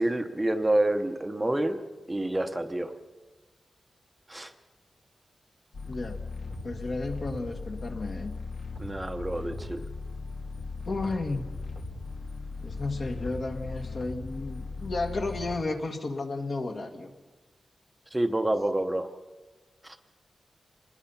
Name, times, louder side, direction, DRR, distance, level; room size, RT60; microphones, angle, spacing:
voice 1, 0.0-2.9 4.3-4.5 8.8-9.8 18.1-19.1 19.8-20.0, right 1 dB, 10° right, 6 dB, 0.8 m, -28 dB
sound 1, 5.7-15.6, left 3 dB, 70° left, 2.6 m, -38 dB
voice 2, 5.9-6.2 6.6-8.3 10.9-11.5 12.6-17.1, left 2 dB, 50° left, 4 dB, 2.0 m, -33 dB
26.5 x 21.0 x 5.7 m, 1.3 s
wide cardioid pair, 160°, 0 cm